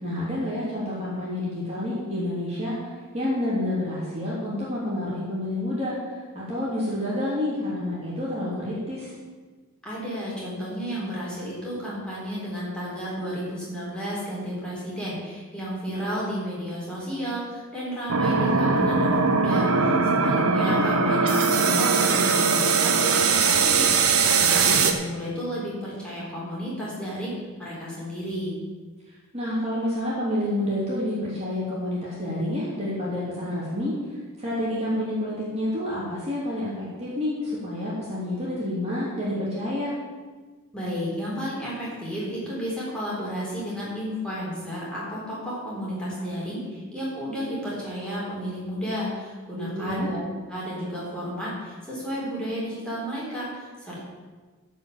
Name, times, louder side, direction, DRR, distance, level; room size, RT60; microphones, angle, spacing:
voice 1, 0.0-5.9 6.3-9.1 20.1-20.9 29.3-33.9 34.4-39.9 49.5-50.1, left 1 dB, 30° right, -7 dB, 2.9 m, -29 dB
voice 2, 9.8-27.3 27.6-28.6 40.7-50.2 50.5-54.1, equal, 5° left, -7 dB, 3.9 m, -32 dB
sound 1, 18.1-24.9, right 4 dB, 80° right, 1.1 m, -21 dB
14.5 x 5.2 x 7.2 m, 1.4 s
head